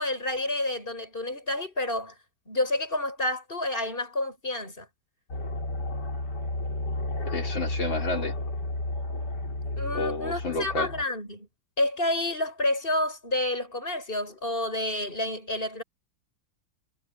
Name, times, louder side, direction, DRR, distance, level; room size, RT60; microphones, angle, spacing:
voice 1, 0.0-2.1 2.5-4.9 9.8-11.5 11.8-15.8, left 1 dB, 25° left, 8.2 m, -29 dB
sound 1, 5.3-11.0, left 2 dB, 60° left, 5.9 m, -32 dB
voice 2, 7.3-8.3 9.9-10.9, left 2 dB, 85° left, 5.2 m, -30 dB
omnidirectional pair, 2.0 m